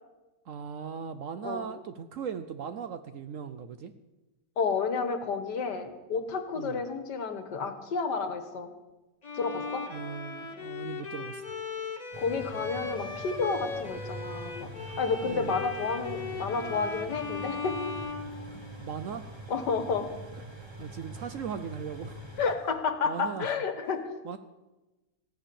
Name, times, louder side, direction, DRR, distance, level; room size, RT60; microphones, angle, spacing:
voice 1, 0.5-3.9 6.6-6.8 9.9-11.4 15.2-15.6 18.5-19.3 20.8-22.2 23.0-23.6 24.2-24.4, right 7 dB, 65° right, 11 dB, 0.8 m, -38 dB
voice 2, 4.6-8.7 9.3-9.8 12.2-14.7 15.0-17.8 19.5-20.1 22.4-24.1, left 5 dB, 70° left, 8 dB, 1.8 m, -31 dB
Bowed string instrument, 9.2-19.0, left 4 dB, 30° left, 1.0 m, -38 dB
sound 1, 12.1-22.6, equal, 15° right, 1.6 m, -44 dB
15.0 x 10.0 x 6.9 m, 1.1 s
omnidirectional pair, 1.9 m